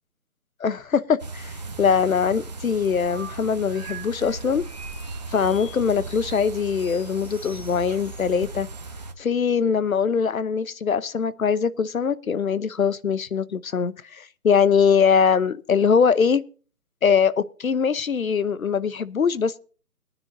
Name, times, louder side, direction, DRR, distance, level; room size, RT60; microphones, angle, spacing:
voice 1, 0.6-4.7 5.3-8.7 9.2-16.4 17.0-19.6, left 6 dB, 60° left, 0.9 m, -22 dB
sound 1, 1.2-9.1, right 3 dB, 25° right, 0.9 m, -37 dB
sound 2, 3.0-8.8, right 3 dB, 5° right, 0.8 m, -45 dB
21.5 x 10.0 x 2.7 m
figure-of-eight pair, 160°, 47 cm